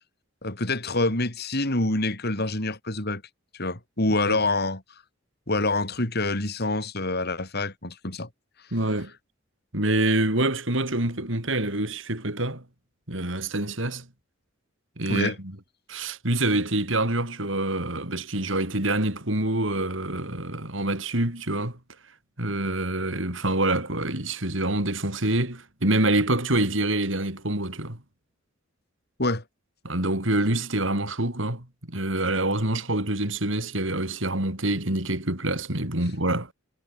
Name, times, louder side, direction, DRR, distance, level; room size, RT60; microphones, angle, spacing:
voice 1, 0.4-3.2 3.5-4.8 5.5-8.3 15.1-15.4 29.2-29.4, left 2 dB, 55° left, 5.1 m, -26 dB
voice 2, 8.7-9.1 9.7-12.6 13.1-14.1 15.0-15.6 15.9-21.8 22.4-28.0 29.8-36.5, right 1 dB, 65° right, 5.2 m, -26 dB
head